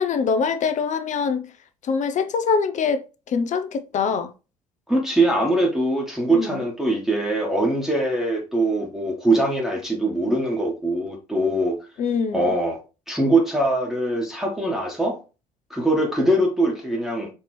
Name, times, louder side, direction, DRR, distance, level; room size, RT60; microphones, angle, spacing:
voice 1, 0.0-1.4 1.8-3.0 3.3-4.3 6.3-6.6 12.0-12.5, left 5 dB, 45° left, 0.6 m, -23 dB
voice 2, 4.9-11.8 12.3-12.8 13.1-15.2 15.7-17.3, right 1 dB, ahead, 1.2 m, -22 dB
4.4 x 2.9 x 3.1 m
hypercardioid pair, 55°, 18 cm